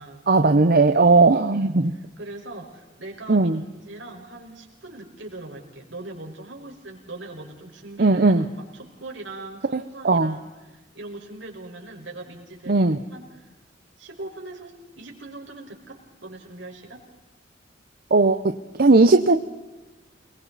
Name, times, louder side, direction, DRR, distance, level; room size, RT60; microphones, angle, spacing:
voice 1, 0.3-1.9 3.3-3.6 8.0-8.4 9.7-10.3 12.7-13.0 18.1-19.3, right 3 dB, 55° right, 7 dB, 0.8 m, -18 dB
voice 2, 1.5-13.5 14.0-17.0, right 2 dB, 75° right, 0 dB, 5.3 m, -41 dB
29.0 x 22.0 x 4.2 m, 1.1 s
head